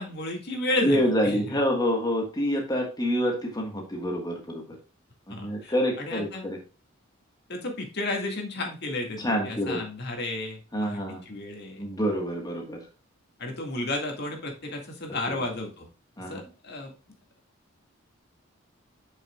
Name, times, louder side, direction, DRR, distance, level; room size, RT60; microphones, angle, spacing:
voice 1, 0.0-1.6 5.3-6.5 7.5-11.8 13.4-15.9 16.2-16.9, left 2 dB, 50° left, 2 dB, 2.1 m, -33 dB
voice 2, 0.8-4.8 5.3-6.6 9.2-9.8 10.7-11.2 11.8-12.8 16.2-16.4, equal, 20° left, 1 dB, 1.5 m, -27 dB
8.2 x 6.3 x 2.4 m, 0.35 s
head